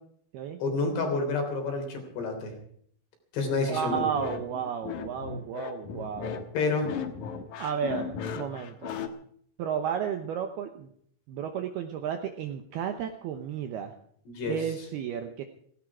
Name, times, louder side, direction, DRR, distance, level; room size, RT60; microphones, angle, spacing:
voice 1, 0.6-2.5 3.3-4.1 6.5-7.0 14.3-14.6, left 3 dB, 60° left, 4 dB, 5.2 m, -29 dB
voice 2, 3.7-6.4 7.6-9.0 9.6-10.9 11.3-13.9 14.5-15.4, right 8 dB, 75° right, 6 dB, 2.4 m, -33 dB
sound 1, 3.9-9.1, left 7 dB, 90° left, 1.7 m, -36 dB
17.0 x 16.5 x 4.8 m, 0.63 s
omnidirectional pair, 5.7 m